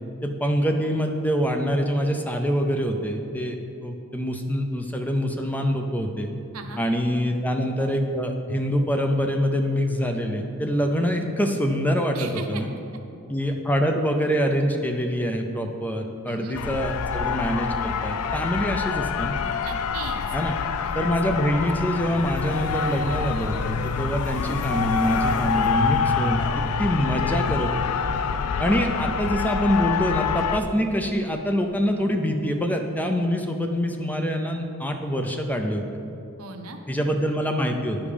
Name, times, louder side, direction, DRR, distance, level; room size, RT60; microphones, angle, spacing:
voice 1, 0.2-3.6 3.8-6.3 6.8-12.7 13.3-19.4 20.3-20.6 20.9-28.0 28.6-35.8 36.9-38.0, equal, 10° left, 4 dB, 0.5 m, -25 dB
voice 2, 12.1-12.6 16.3-16.6 19.6-20.2 20.8-20.9 21.3-21.4 36.4-36.8, right 4 dB, 75° right, 5 dB, 0.8 m, -37 dB
sound 1, 16.5-30.6, left 6 dB, 85° left, 0.4 m, -26 dB
9.9 x 5.3 x 5.0 m, 2.6 s
head